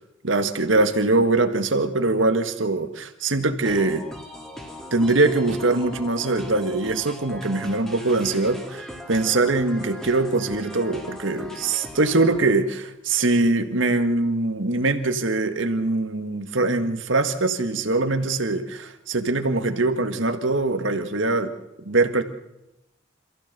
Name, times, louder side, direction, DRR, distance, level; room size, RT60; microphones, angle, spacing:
voice 1, 0.2-4.0 4.9-21.5 21.9-22.2, right 2 dB, 70° right, 7 dB, 1.8 m, -22 dB
sound 1, 3.6-12.5, left 1 dB, 5° left, 2.7 m, -39 dB
27.0 x 15.0 x 6.8 m, 0.89 s
head